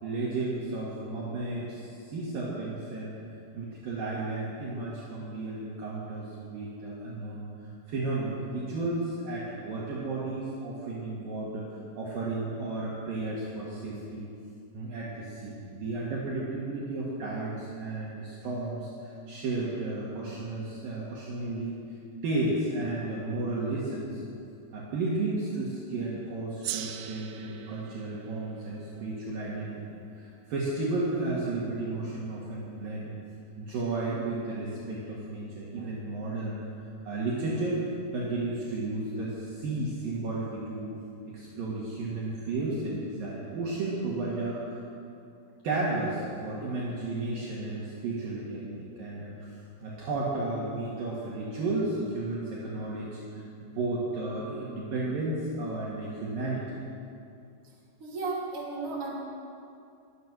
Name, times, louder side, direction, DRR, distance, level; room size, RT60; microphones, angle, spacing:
voice 1, 0.0-7.5 7.9-11.7 11.9-14.3 14.7-21.7 22.2-24.2 24.7-29.8 30.1-33.1 33.6-36.7 37.0-37.8 38.1-40.9 41.3-44.8 45.6-49.5 49.8-56.6, right 2 dB, 55° right, -6 dB, 3.4 m, -33 dB
Gong, 26.6-31.4, right 11 dB, 80° right, 3.0 m, -42 dB
voice 2, 58.0-59.1, right 3 dB, 35° right, -5 dB, 3.6 m, -34 dB
23.5 x 9.2 x 6.4 m, 2.6 s
omnidirectional pair, 5.3 m